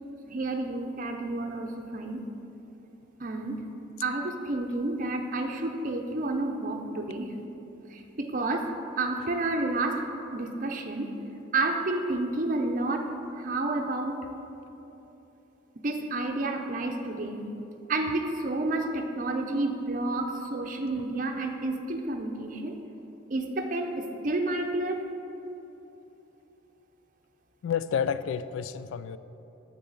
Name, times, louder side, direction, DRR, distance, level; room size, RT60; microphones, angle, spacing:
voice 1, 0.3-2.2 3.2-3.6 4.0-7.3 7.9-8.7 9.0-10.1 10.3-11.1 11.5-13.1 13.4-14.2 15.8-17.4 17.9-22.8 23.3-25.1, right 2 dB, 40° right, 3 dB, 0.6 m, -30 dB
voice 2, 27.6-29.2, left 7 dB, 85° left, 14 dB, 0.3 m, -30 dB
8.6 x 4.1 x 7.1 m, 2.9 s
head